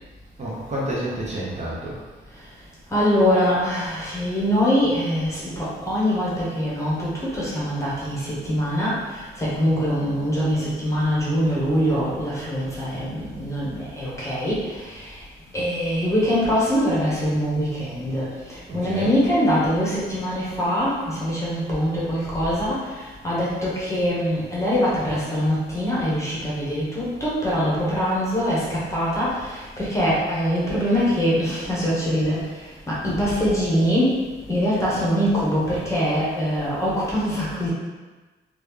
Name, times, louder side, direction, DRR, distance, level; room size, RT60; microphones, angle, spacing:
voice 1, 0.4-2.0 18.7-19.2, right 1 dB, 35° right, -6 dB, 0.7 m, -29 dB
voice 2, 2.9-9.0 9.4-15.0 15.5-18.3 18.7-22.8 23.2-32.4 32.9-34.2 34.5-37.7, equal, 15° left, -8 dB, 0.9 m, -23 dB
3.0 x 2.4 x 3.5 m, 1.2 s
wide cardioid pair, 155°, 20 cm